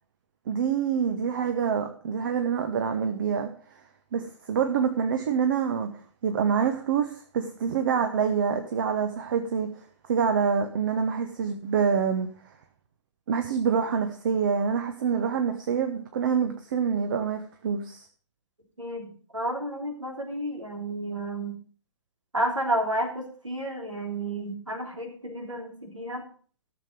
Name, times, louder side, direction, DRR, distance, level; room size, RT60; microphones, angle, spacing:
voice 1, 0.5-3.5 4.1-5.9 6.2-9.7 10.1-12.3 13.3-18.0, right 7 dB, 40° right, 6 dB, 1.1 m, -26 dB
voice 2, 18.8-21.5 22.3-26.2, right 1 dB, 80° right, 2 dB, 3.3 m, -31 dB
13.5 x 7.1 x 5.1 m, 0.43 s
figure-of-eight pair, 125°, 16 cm